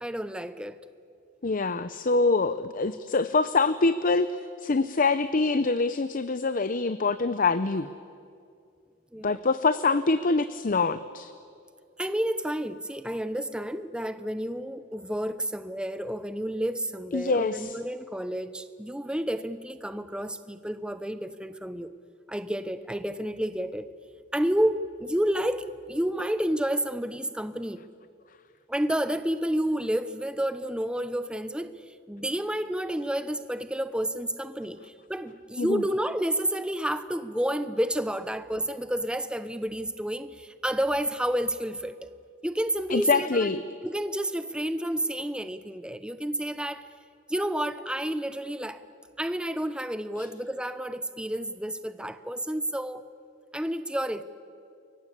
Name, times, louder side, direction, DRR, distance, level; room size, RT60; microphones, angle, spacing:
voice 1, 0.0-0.8 9.1-9.4 12.0-21.9 22.3-23.9 24.3-27.8 28.7-31.7 32.1-42.1 42.4-43.5 43.8-46.8 47.3-48.8 49.2-53.0 53.5-54.2, right 1 dB, 5° right, 0.9 m, -30 dB
voice 2, 1.4-7.9 9.2-11.3 17.1-17.8 35.6-35.8 42.9-43.6 50.2-50.3, left 3 dB, 45° left, 0.7 m, -25 dB
28.5 x 23.0 x 8.5 m
head